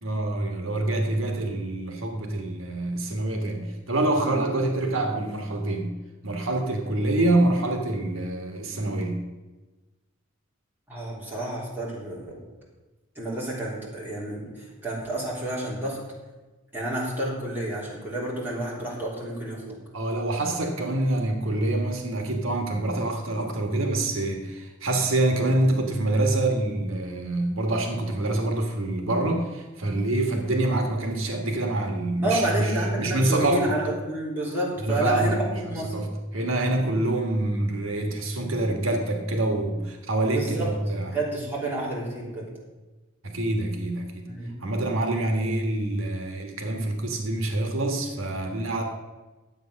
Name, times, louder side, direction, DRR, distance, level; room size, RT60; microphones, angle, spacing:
voice 1, 0.0-5.9 6.2-9.2 19.9-33.6 34.8-41.1 43.2-44.3 44.6-48.8, right 2 dB, 80° right, 4 dB, 1.4 m, -26 dB
voice 2, 10.9-12.4 13.2-14.5 14.8-16.0 16.7-19.8 32.2-35.4 35.7-36.0 36.8-37.0 40.3-40.7 41.0-42.5 44.3-44.6, right 1 dB, 10° right, -6 dB, 3.4 m, -30 dB
11.0 x 8.1 x 6.3 m, 1.2 s
head